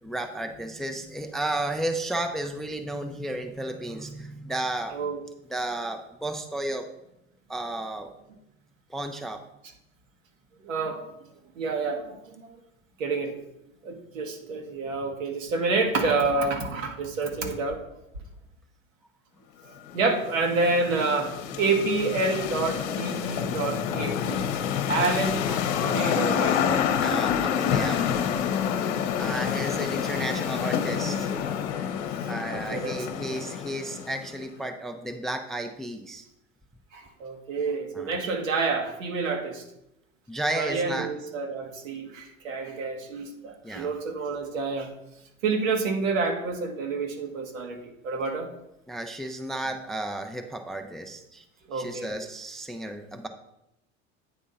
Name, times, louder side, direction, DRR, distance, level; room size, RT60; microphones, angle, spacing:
voice 1, 0.0-5.0 5.5-6.9 7.5-8.1 8.9-9.4 25.5-25.6 27.0-28.0 29.2-31.3 32.3-36.2 37.9-38.2 40.3-41.1 43.6-43.9 48.9-51.4 51.7-53.3, right 1 dB, ahead, 6 dB, 0.5 m, -33 dB
voice 2, 10.6-11.1 11.5-12.5 13.0-13.3 13.8-17.8 19.6-24.4 24.9-25.4 25.8-26.8 31.7-31.8 32.5-33.0 36.9-39.6 40.5-44.9 45.4-48.5 51.7-52.1, right 3 dB, 75° right, 3 dB, 1.5 m, -28 dB
sound 1, 19.9-34.4, left 8 dB, 60° left, 0.9 m, -28 dB
8.8 x 3.7 x 5.6 m, 0.84 s
hypercardioid pair, 85°, 39 cm